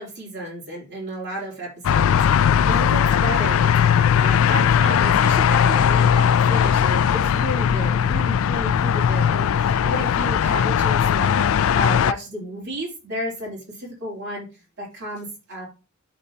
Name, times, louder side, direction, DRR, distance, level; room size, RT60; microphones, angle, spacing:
voice 1, 0.0-14.5 14.8-15.7, right 1 dB, 55° right, -3 dB, 3.0 m, -32 dB
sound 1, 1.8-12.1, left 8 dB, 75° left, 0.3 m, -19 dB
12.0 x 4.0 x 2.8 m, 0.29 s
head